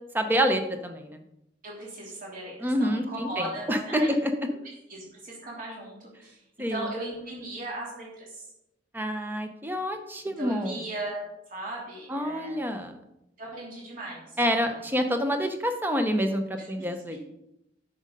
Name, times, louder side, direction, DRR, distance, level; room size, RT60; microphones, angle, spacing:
voice 1, 0.1-1.2 2.6-4.3 6.6-6.9 8.9-10.8 12.1-13.0 14.4-17.2, equal, 10° right, 6 dB, 0.7 m, -27 dB
voice 2, 1.6-4.1 4.9-8.5 10.4-11.2 11.5-12.7 13.4-14.8 16.6-17.2, right 2 dB, 45° right, -4 dB, 3.0 m, -38 dB
9.4 x 6.3 x 3.9 m, 0.86 s
head